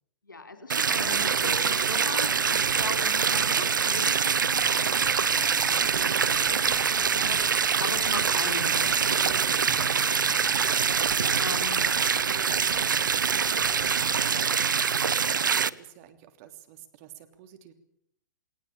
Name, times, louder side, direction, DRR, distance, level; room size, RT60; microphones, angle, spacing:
voice 1, 0.2-9.5 9.9-10.4 11.4-11.8, left 3 dB, 85° left, 7 dB, 3.9 m, -39 dB
sound 1, 0.7-15.7, right 6 dB, 75° right, 0.8 m, -24 dB
sound 2, 0.9-14.4, right 2 dB, 5° right, 2.0 m, -53 dB
voice 2, 5.9-6.3 9.4-9.8 11.8-11.9 12.3-17.7, right 10 dB, 45° right, 8 dB, 3.2 m, -50 dB
19.5 x 19.0 x 8.9 m, 0.73 s
figure-of-eight pair, 110°, 10 cm